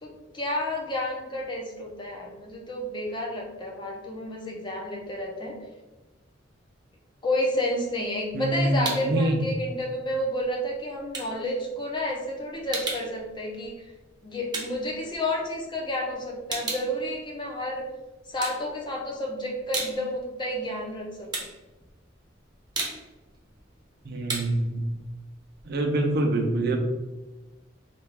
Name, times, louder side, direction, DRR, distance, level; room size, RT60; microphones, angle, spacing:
voice 1, 0.0-5.6 7.2-13.9 14.2-17.9 18.3-21.5, left 1 dB, 25° left, -1 dB, 0.6 m, -30 dB
sound 1, 8.0-9.2 9.6-15.8 16.1-17.9 18.3-19.1 19.5-26.2, right 3 dB, 20° right, 0.7 m, -36 dB
voice 2, 8.3-9.4 24.0-24.8 25.7-26.8, right 1 dB, 55° right, 3 dB, 0.6 m, -25 dB
3.4 x 2.4 x 3.3 m, 1.1 s
head